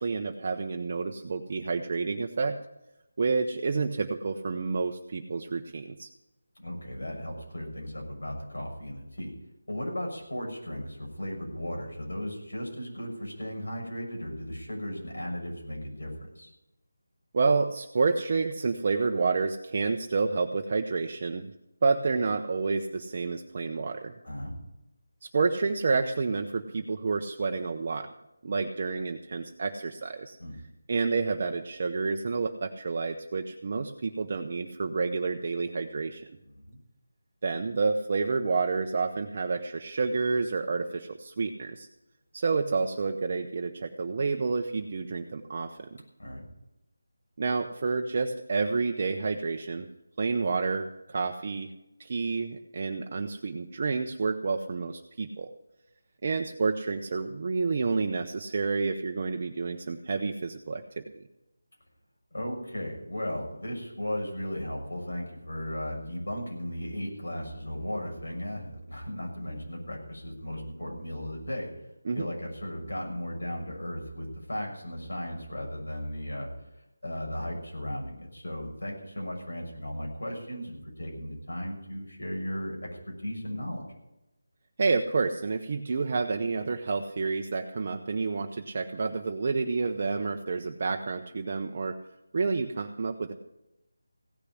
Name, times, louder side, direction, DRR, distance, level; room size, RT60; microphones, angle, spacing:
voice 1, 0.0-2.6 3.2-6.1 17.3-21.5 21.8-24.1 25.2-28.1 28.4-30.4 30.9-36.2 37.4-41.9 42.3-46.0 47.4-49.9 50.2-51.7 52.0-55.5 56.2-61.0 72.0-72.3 84.8-92.0 92.3-93.3, right 4 dB, 40° right, 4 dB, 0.8 m, -29 dB
voice 2, 6.6-9.3 9.7-16.5 24.2-24.6 30.4-30.6 36.6-36.8 46.2-46.5 62.3-71.7 72.1-76.5 77.0-83.8, equal, 85° left, 0 dB, 6.4 m, -36 dB
16.5 x 6.8 x 9.8 m, 0.93 s
figure-of-eight pair, 170°, 0 cm